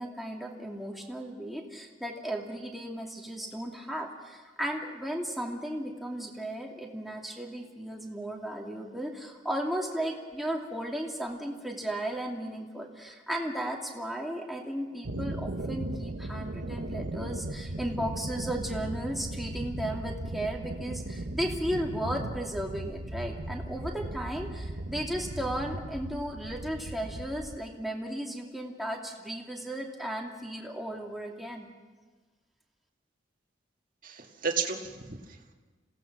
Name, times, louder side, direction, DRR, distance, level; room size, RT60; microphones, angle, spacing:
voice 1, 0.0-31.7, right 1 dB, ahead, -1 dB, 2.7 m, -35 dB
sound 1, 15.0-27.6, right 1 dB, 85° right, 1.2 m, -37 dB
voice 2, 34.0-35.5, right 5 dB, 50° right, 1 dB, 2.1 m, -33 dB
27.0 x 17.5 x 6.2 m, 1.3 s
head